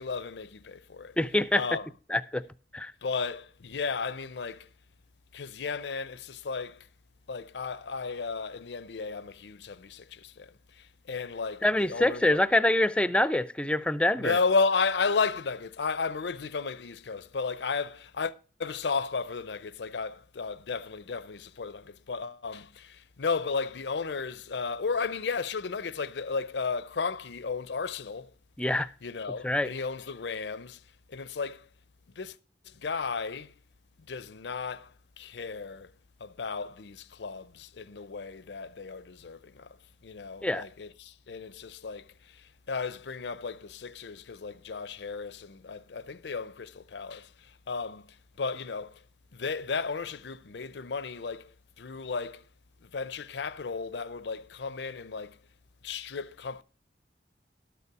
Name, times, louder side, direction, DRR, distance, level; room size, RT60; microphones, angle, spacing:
voice 1, 0.0-1.2 1.6-1.9 3.0-4.7 5.3-6.9 7.3-12.4 14.2-28.3 29.0-30.8 31.1-31.7 32.1-32.4 32.6-33.5 34.1-35.9 36.2-39.8 40.0-49.0 49.3-52.5 52.8-55.4 55.8-56.6, left 4 dB, 80° left, 0.6 m, -34 dB
voice 2, 1.2-1.6 2.1-2.4 2.7-2.9 11.6-14.4 28.6-28.9 29.4-29.7 40.4-40.7, left 1 dB, 5° left, 0.4 m, -25 dB
12.5 x 6.9 x 4.8 m
head